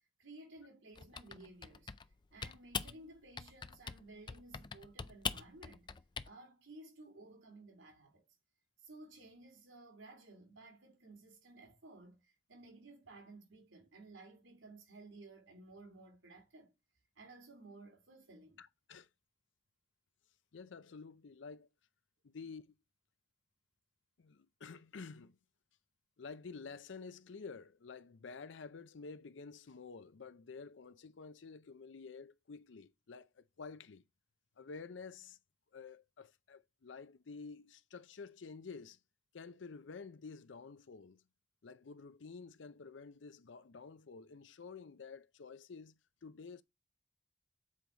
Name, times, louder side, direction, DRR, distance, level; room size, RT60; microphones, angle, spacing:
voice 1, 0.2-1.9 2.3-5.9 6.2-8.3 8.8-16.7 17.2-18.6, right 2 dB, 85° right, 3.1 m, -56 dB
Typing, 1.0-2.1 2.4-3.0 3.4-4.0 4.3-6.3, left 6 dB, 25° left, 0.3 m, -42 dB
voice 2, 18.6-19.1 20.5-21.7 22.2-22.8 24.2-25.4 26.2-34.0 34.6-35.4 35.7-39.0 39.3-41.2 41.6-46.6, left 4 dB, 75° left, 0.6 m, -50 dB
7.4 x 4.6 x 3.9 m
head